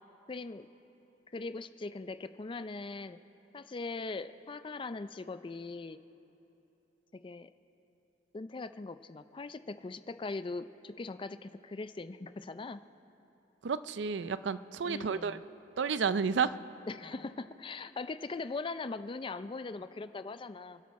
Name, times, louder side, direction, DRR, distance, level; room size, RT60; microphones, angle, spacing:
voice 1, 0.3-0.7 1.3-3.2 3.5-6.0 7.2-7.5 8.3-12.8 14.8-15.4 16.9-20.8, left 3 dB, 30° left, 12 dB, 0.4 m, -40 dB
voice 2, 13.6-15.4 15.8-16.5, right 5 dB, 75° right, 14 dB, 0.5 m, -31 dB
28.5 x 11.5 x 4.2 m, 3.0 s
head